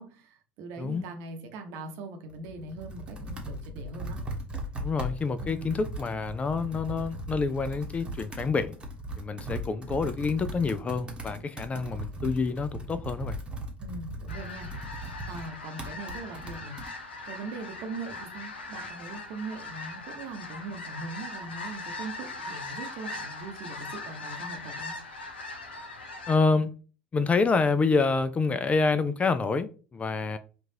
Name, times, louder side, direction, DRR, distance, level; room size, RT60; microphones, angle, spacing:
voice 1, 0.0-4.2 5.4-5.7 13.8-14.7 15.3-16.8 17.2-24.9, right 3 dB, 60° right, 0.8 m, -41 dB
Computer keyboard, 2.3-16.9, right 1 dB, 15° right, 1.0 m, -38 dB
voice 2, 4.8-8.7 9.2-13.4 26.3-26.7 27.1-30.4, left 4 dB, 25° left, 0.3 m, -27 dB
sound 1, 14.3-26.4, left 3 dB, 85° left, 0.6 m, -40 dB
4.4 x 2.4 x 2.7 m
hypercardioid pair, 70°, 6 cm